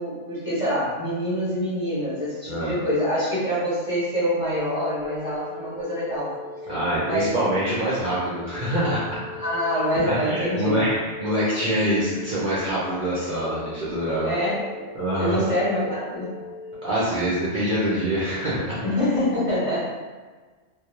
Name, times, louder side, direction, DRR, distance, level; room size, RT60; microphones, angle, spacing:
voice 1, 0.0-6.3 7.0-7.3 9.4-10.8 14.2-14.7 15.2-16.4 18.8-19.8, equal, 40° left, -11 dB, 0.5 m, -25 dB
sound 1, 4.4-16.8, left 3 dB, 75° left, 0.9 m, -39 dB
voice 2, 6.7-9.2 10.1-14.3 15.0-15.4 16.8-18.8, equal, 60° right, -8 dB, 0.5 m, -25 dB
2.2 x 2.0 x 2.9 m, 1.4 s
omnidirectional pair, 1.3 m